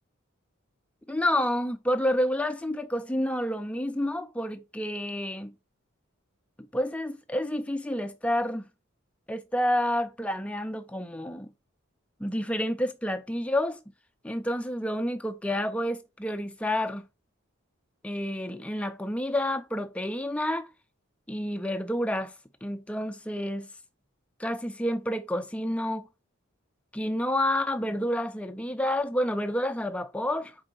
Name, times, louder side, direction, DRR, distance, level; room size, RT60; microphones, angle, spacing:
voice 1, 1.1-5.5 6.7-8.6 9.3-11.5 12.2-13.8 14.2-17.0 18.0-20.7 21.3-22.3 22.6-23.7 24.4-26.1 26.9-30.6, left 1 dB, 5° left, 0.3 m, -29 dB
4.5 x 3.7 x 2.6 m
head